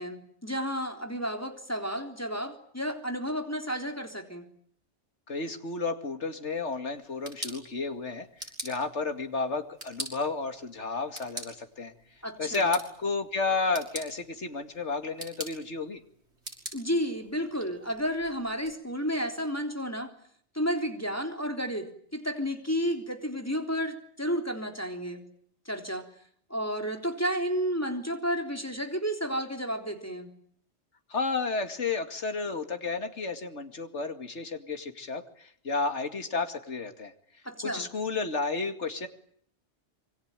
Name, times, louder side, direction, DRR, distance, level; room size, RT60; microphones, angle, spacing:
voice 1, 0.0-4.5 12.2-12.7 16.7-20.1 20.5-25.2 25.7-26.1 26.5-30.3 37.5-37.9, equal, 15° left, 4 dB, 3.6 m, -32 dB
voice 2, 5.3-8.3 8.6-11.9 12.4-16.0 31.1-37.1 37.6-39.1, left 4 dB, 80° left, 7 dB, 2.6 m, -32 dB
sound 1, 7.0-18.7, right 1 dB, 65° right, 6.7 m, -45 dB
26.5 x 24.0 x 9.1 m, 0.63 s
omnidirectional pair, 1.2 m